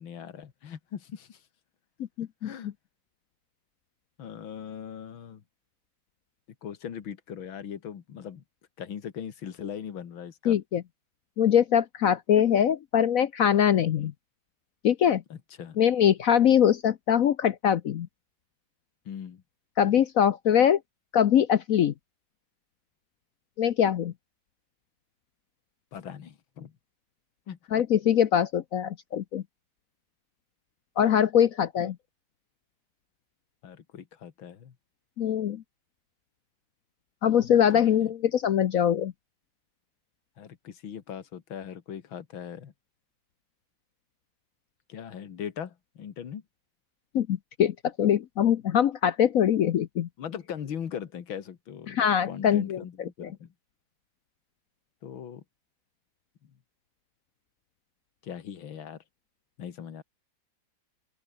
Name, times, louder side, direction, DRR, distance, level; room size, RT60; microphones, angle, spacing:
voice 1, 0.0-1.4 2.4-2.7 4.2-5.4 6.6-8.4 8.8-10.6 14.0-14.1 15.3-15.8 19.1-19.4 25.9-26.7 27.5-27.7 31.8-31.9 33.6-34.7 37.7-38.1 40.4-42.7 44.9-46.4 50.2-52.0 52.3-53.5 55.0-55.4 58.2-59.0 59.6-60.0, left 8 dB, 80° left, 2.5 m, -40 dB
voice 2, 2.2-2.5 10.5-10.8 11.4-14.1 14.8-15.2 15.8-18.1 19.8-20.8 21.1-21.9 23.6-24.1 27.7-29.4 31.0-32.0 35.2-35.6 37.2-39.1 47.1-50.1 51.9-52.8, left 9 dB, 65° left, 0.9 m, -23 dB
open air
omnidirectional pair, 2.2 m